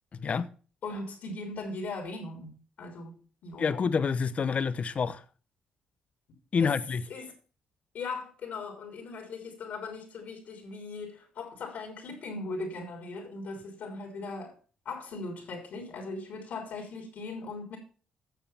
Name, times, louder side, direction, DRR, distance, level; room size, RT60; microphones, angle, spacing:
voice 1, 0.8-2.5 2.8-3.7 6.6-6.7 7.1-7.3 7.9-14.5 14.9-17.8, left 3 dB, 70° left, 3.6 m, -39 dB
voice 2, 3.6-5.2 6.5-7.0, left 5 dB, 50° left, 0.8 m, -27 dB
9.2 x 7.0 x 5.7 m
supercardioid pair, 60°, 3 cm